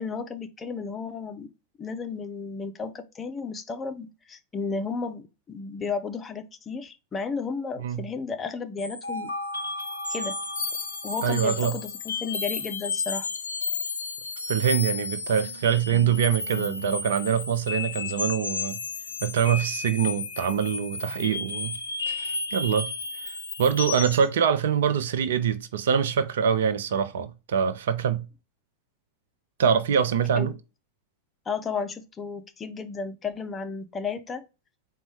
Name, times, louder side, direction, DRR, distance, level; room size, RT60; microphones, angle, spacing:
voice 1, 0.0-1.5 1.8-9.3 10.1-10.4 11.0-13.3 30.4-30.5 31.5-34.4, left 5 dB, 20° left, 0.5 m, -33 dB
sound 1, 8.8-24.3, left 4 dB, 70° left, 0.5 m, -32 dB
voice 2, 11.2-11.7 14.5-18.8 19.2-21.8 22.1-22.9 23.2-28.2 29.6-30.5, right 8 dB, 60° right, 0.5 m, -24 dB
4.2 x 2.2 x 4.5 m
figure-of-eight pair, 90°, 0 cm